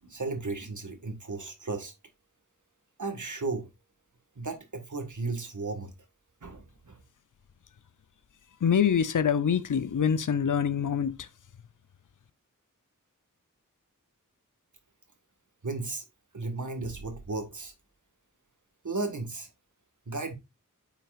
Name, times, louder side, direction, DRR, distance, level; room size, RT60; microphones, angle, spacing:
voice 1, 0.0-1.9 3.0-3.7 4.3-5.9 6.4-7.0 15.6-16.0 16.3-17.7 18.8-19.5 20.1-20.4, right 3 dB, 65° right, 1.6 m, -34 dB
voice 2, 8.6-11.3, left 7 dB, 70° left, 0.6 m, -25 dB
9.0 x 5.7 x 2.4 m
wide cardioid pair, 55°, 33 cm